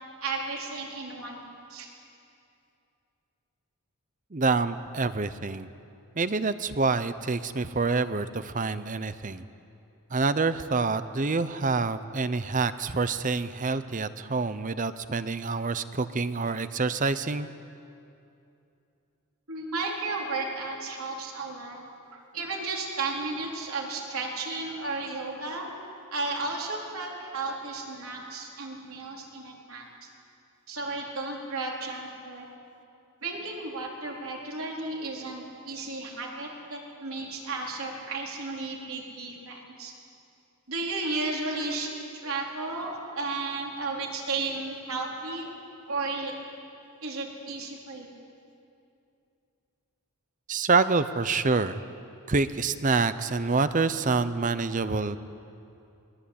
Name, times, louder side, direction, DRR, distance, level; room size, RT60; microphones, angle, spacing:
voice 1, 0.2-1.4 1.7-1.9 19.5-21.8 22.1-25.7 26.1-29.8 30.7-32.5 33.2-39.9 40.7-41.9 42.2-45.5 45.9-46.3 47.0-48.1, right 3 dB, 70° right, -1 dB, 4.2 m, -33 dB
voice 2, 4.3-5.7 6.2-9.4 10.1-17.5 50.5-51.8 52.3-55.2, right 4 dB, 35° right, 13 dB, 0.7 m, -27 dB
23.0 x 20.0 x 8.7 m, 2.6 s
head